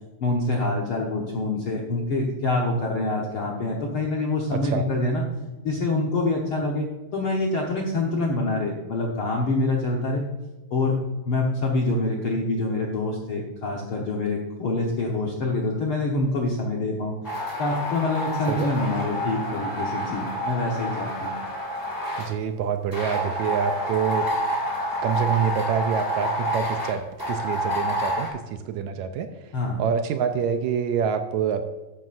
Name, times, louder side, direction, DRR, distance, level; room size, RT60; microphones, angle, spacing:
voice 1, 0.2-5.2 5.6-6.9 7.1-10.2 10.7-11.0 11.2-17.1 17.6-21.3 29.5-29.8, left 2 dB, 65° left, -1 dB, 1.4 m, -26 dB
voice 2, 4.5-4.8 18.5-18.7 22.2-24.3 25.0-29.3 29.8-31.6, right 7 dB, 85° right, 8 dB, 1.6 m, -26 dB
sound 1, 17.2-22.3 22.9-28.3, equal, 10° left, 1.1 m, -28 dB
12.5 x 9.0 x 2.5 m, 1.1 s
omnidirectional pair, 3.8 m